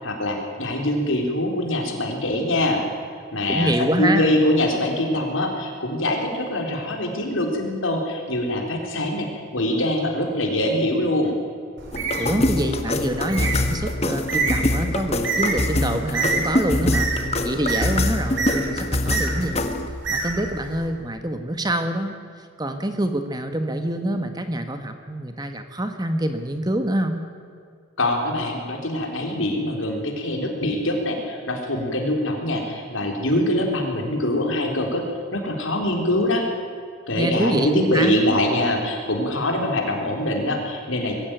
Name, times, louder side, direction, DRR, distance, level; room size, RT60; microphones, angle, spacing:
voice 1, 0.0-2.8 3.3-9.3 9.5-11.3 28.0-35.0 35.3-36.5 37.1-41.1, left 1 dB, 70° left, 2 dB, 4.1 m, -23 dB
voice 2, 3.5-4.3 12.2-17.1 17.4-19.6 20.1-27.2 37.2-38.1, right 1 dB, 20° right, 7 dB, 1.3 m, -26 dB
Bird, 11.8-20.9, right 4 dB, 60° right, 4.0 m, -29 dB
sound 1, 11.9-19.9, left 1 dB, 30° left, 1.4 m, -24 dB
22.0 x 15.5 x 9.1 m, 2.3 s
head